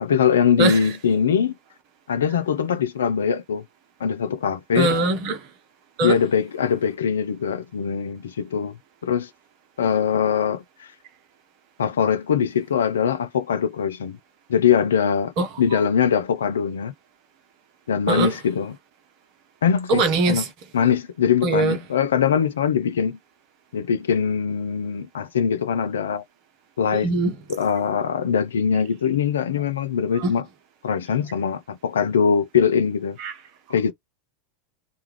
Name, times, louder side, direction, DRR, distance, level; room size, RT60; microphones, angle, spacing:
voice 1, 0.0-1.6 2.1-3.6 4.0-4.9 6.0-8.7 9.0-9.3 9.8-10.9 11.8-14.2 14.5-16.9 17.9-18.8 19.6-20.0 20.3-20.4 20.7-23.2 23.7-26.2 26.8-27.1 27.5-30.4 30.8-33.2 33.7-33.9, left 7 dB, 75° left, 0.3 m, -22 dB
voice 2, 4.7-5.5 6.0-6.2 15.4-15.5 18.1-18.3 19.9-20.5 21.4-21.8 27.0-27.3 30.2-30.3 33.2-33.3, right 3 dB, 50° right, 0.8 m, -21 dB
2.3 x 2.0 x 3.1 m
figure-of-eight pair, 85°, 0 cm